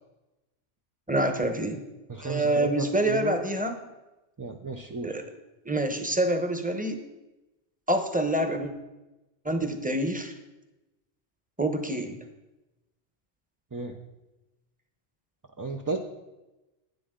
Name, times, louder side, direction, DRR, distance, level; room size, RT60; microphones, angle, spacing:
voice 1, 1.1-1.8 2.2-3.7 5.0-5.2 5.6-7.0 7.9-8.7 9.4-10.3 11.6-12.2, right 1 dB, 10° right, 6 dB, 0.9 m, -26 dB
voice 2, 2.1-3.4 4.4-5.1 13.7-14.0 15.6-16.0, right 3 dB, 25° right, 2 dB, 0.4 m, -33 dB
12.0 x 9.7 x 3.8 m, 1.0 s
omnidirectional pair, 1.1 m